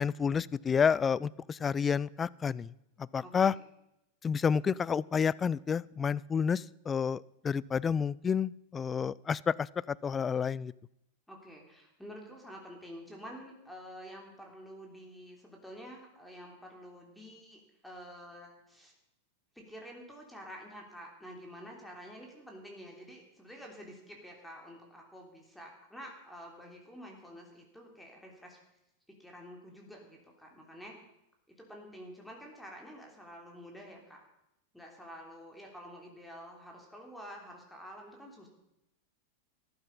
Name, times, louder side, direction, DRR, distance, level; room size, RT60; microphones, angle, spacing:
voice 1, 0.0-2.7 3.1-3.5 4.2-10.7, left 6 dB, 20° left, 22 dB, 0.4 m, -30 dB
voice 2, 3.2-3.6 11.3-18.9 19.5-28.6 29.2-31.0 31.5-34.2 34.7-38.5, equal, 5° left, 0 dB, 3.3 m, -49 dB
14.5 x 11.5 x 5.4 m, 0.84 s
hypercardioid pair, 100°, 0 cm